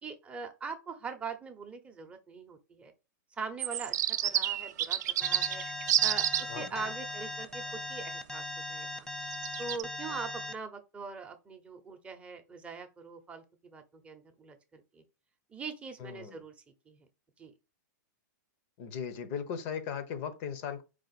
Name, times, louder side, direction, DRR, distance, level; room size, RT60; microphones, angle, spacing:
voice 1, 0.0-2.9 3.4-5.6 6.0-8.4 8.7-9.1 9.6-15.0 15.5-16.5 16.9-17.1 17.4-17.5, right 4 dB, 10° right, 0.8 m, -42 dB
sound 1, 3.6-6.4 9.3-9.8, right 11 dB, 65° right, 0.5 m, -29 dB
Alarm, 5.2-10.5, left 2 dB, 5° left, 0.5 m, -39 dB
voice 2, 16.0-16.4 18.8-20.8, left 7 dB, 45° left, 0.9 m, -37 dB
4.8 x 2.5 x 4.1 m
hypercardioid pair, 135°, 10 cm